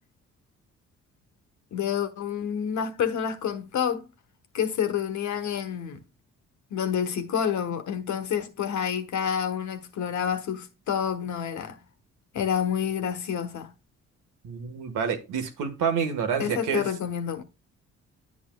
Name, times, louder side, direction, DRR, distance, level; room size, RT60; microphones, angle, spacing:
voice 1, 1.7-4.1 4.5-6.0 6.7-11.8 12.3-13.7 16.4-17.4, left 8 dB, 70° left, 1.3 m, -28 dB
voice 2, 14.4-16.8, right 6 dB, 90° right, 1.5 m, -28 dB
9.9 x 8.5 x 2.3 m
cardioid pair, 90°, 30 cm